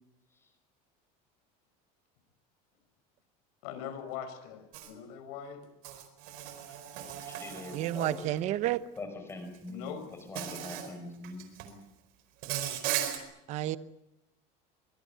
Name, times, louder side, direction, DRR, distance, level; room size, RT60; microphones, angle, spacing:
voice 1, 3.6-5.7 6.0-6.1 9.7-10.0, left 8 dB, 70° left, 10 dB, 5.4 m, -41 dB
Insect, 4.7-4.9 5.8-8.4 9.5-9.7 10.4-10.9 11.2-11.7 12.4-13.2, right 11 dB, 50° right, 4.4 m, -37 dB
voice 2, 7.2-8.3 9.0-11.8, left 2 dB, 10° left, 6 dB, 5.1 m, -43 dB
voice 3, 7.7-8.8 13.5-13.8, right 13 dB, 35° right, 14 dB, 0.9 m, -30 dB
24.0 x 22.5 x 8.0 m, 0.88 s
cardioid pair, 180°, 20 cm